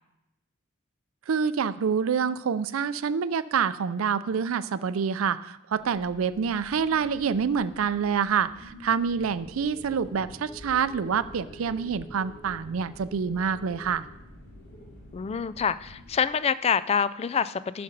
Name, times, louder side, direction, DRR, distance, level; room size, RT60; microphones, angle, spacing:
voice 1, 1.3-14.1, right 6 dB, 85° right, 14 dB, 0.4 m, -27 dB
sound 1, 5.7-16.2, left 1 dB, 55° left, 2.0 m, -47 dB
voice 2, 15.1-17.8, left 7 dB, 30° left, 16 dB, 0.3 m, -26 dB
11.0 x 5.1 x 6.6 m, 0.87 s
head